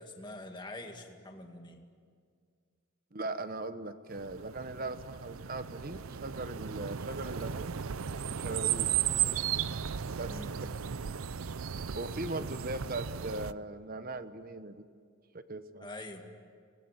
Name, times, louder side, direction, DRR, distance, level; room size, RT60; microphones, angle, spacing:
voice 1, 0.0-1.8 10.2-10.6 12.4-12.5 15.8-16.2, left 2 dB, 20° left, 3 dB, 2.2 m, -45 dB
voice 2, 3.1-7.8 8.3-8.9 10.1-10.4 11.7-14.8 15.3-15.9, right 2 dB, 45° right, 11 dB, 1.1 m, -39 dB
sound 1, 4.1-13.5, right 9 dB, 85° right, 0.6 m, -35 dB
25.0 x 19.5 x 10.0 m, 2.1 s
head